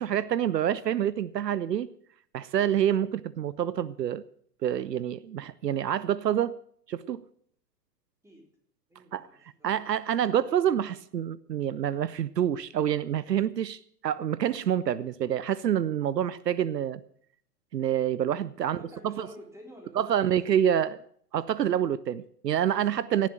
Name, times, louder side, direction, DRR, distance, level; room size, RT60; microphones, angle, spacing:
voice 1, 0.0-1.9 2.3-4.2 4.6-6.5 6.9-7.2 9.1-9.3 9.6-17.0 17.7-18.8 19.0-19.3 20.0-21.0 21.3-23.3, right 10 dB, 80° right, 19 dB, 0.6 m, -27 dB
voice 2, 8.9-9.9 18.5-20.4, left 1 dB, 5° right, 0 dB, 3.9 m, -49 dB
17.5 x 7.3 x 7.7 m, 0.63 s
figure-of-eight pair, 95°, 49 cm